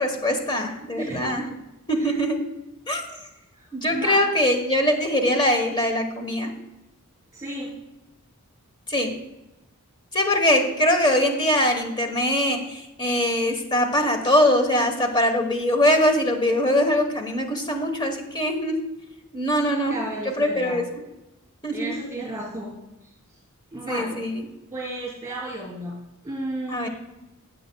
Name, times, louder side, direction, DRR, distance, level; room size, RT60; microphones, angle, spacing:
voice 1, 0.0-1.5 1.9-2.4 2.9-3.0 3.7-6.5 8.9-9.2 10.1-18.8 19.3-19.9 20.2-20.9 21.6-21.9 23.9-24.4 26.7-26.9, left 1 dB, 20° left, 5 dB, 1.2 m, -22 dB
voice 2, 1.0-1.4 2.0-2.1 3.5-4.2 7.3-7.7 19.8-20.8 21.7-22.7 23.7-24.2 24.7-25.9 26.2-26.9, right 1 dB, 15° right, -3 dB, 3.4 m, -33 dB
15.5 x 7.5 x 2.3 m, 0.96 s
head